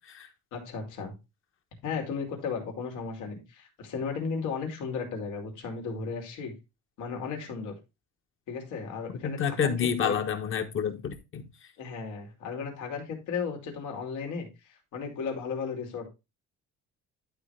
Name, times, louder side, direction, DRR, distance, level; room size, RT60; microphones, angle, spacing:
voice 1, 0.5-1.1 1.8-6.5 7.0-7.7 8.5-9.7 10.0-10.2 11.8-16.1, left 5 dB, 85° left, 2.9 m, -35 dB
voice 2, 9.2-11.5, left 7 dB, 45° left, 1.3 m, -29 dB
11.5 x 4.2 x 3.3 m
cardioid pair, 155°, 30 cm